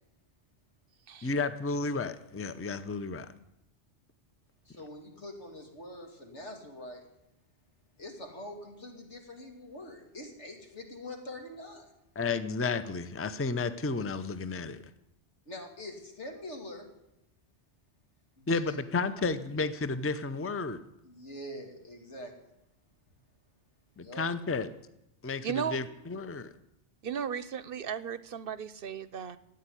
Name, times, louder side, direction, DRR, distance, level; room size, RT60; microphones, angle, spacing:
voice 1, 1.2-3.3 12.2-14.8 18.5-20.8 24.0-24.7 25.2-26.5, left 4 dB, 15° left, 12 dB, 0.6 m, -32 dB
voice 2, 4.6-7.0 8.0-11.9 15.5-16.9 18.4-18.8 21.0-22.5 24.0-24.3, left 1 dB, 90° left, 3 dB, 2.9 m, -44 dB
voice 3, 25.4-25.8 27.0-29.4, right 7 dB, 60° right, 16 dB, 0.8 m, -35 dB
14.5 x 9.0 x 9.8 m, 0.84 s
omnidirectional pair, 1.2 m